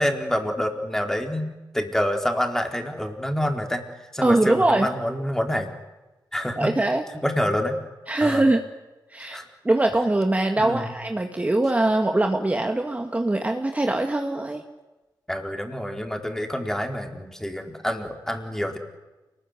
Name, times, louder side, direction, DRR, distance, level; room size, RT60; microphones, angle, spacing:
voice 1, 0.0-3.8 4.1-5.7 6.3-6.7 7.1-7.8 8.2-8.4 9.2-9.4 10.6-10.9 15.3-18.8, equal, 5° left, 4 dB, 4.3 m, -27 dB
voice 2, 4.2-4.9 6.6-7.0 8.1-8.6 9.1-9.4 9.6-14.6, right 2 dB, 20° right, 4 dB, 2.1 m, -22 dB
29.0 x 20.5 x 9.9 m, 1.1 s
wide cardioid pair, 105°, 8 cm